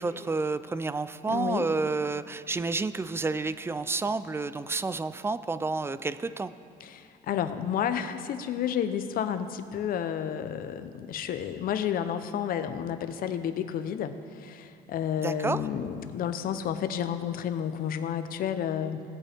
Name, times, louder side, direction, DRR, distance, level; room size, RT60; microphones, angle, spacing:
voice 1, 0.0-6.5 15.2-15.6, right 3 dB, 15° right, 14 dB, 0.3 m, -30 dB
voice 2, 1.3-1.7 6.8-19.0, left 9 dB, 60° left, 10 dB, 0.7 m, -31 dB
17.5 x 8.6 x 3.5 m, 2.5 s
cardioid pair, 110°, 17 cm